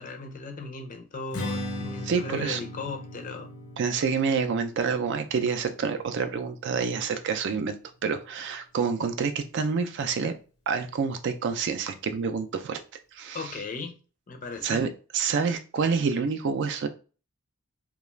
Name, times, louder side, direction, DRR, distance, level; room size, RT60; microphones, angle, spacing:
voice 1, 0.0-3.5 13.3-13.9 14.3-14.8, left 3 dB, 40° left, 0.5 m, -37 dB
Strum, 1.3-7.6, left 1 dB, 90° left, 0.7 m, -39 dB
voice 2, 2.0-2.6 3.8-10.4 10.7-12.8 13.1-13.5 14.6-16.9, right 5 dB, 55° right, 0.4 m, -28 dB
2.3 x 2.3 x 3.0 m
head